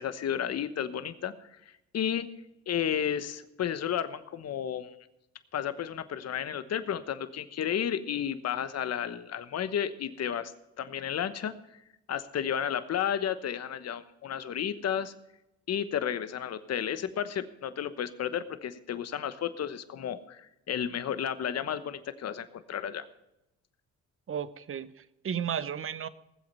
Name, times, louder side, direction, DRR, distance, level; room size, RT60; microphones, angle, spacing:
voice 1, 0.0-1.5 1.9-2.3 2.7-4.9 5.5-10.5 10.8-11.5 12.1-15.1 15.7-23.1, left 9 dB, 55° left, 12 dB, 1.1 m, -32 dB
voice 2, 24.3-26.1, right 8 dB, 45° right, 15 dB, 0.9 m, -34 dB
19.0 x 7.8 x 5.5 m, 0.87 s
cardioid pair, 90°, 30 cm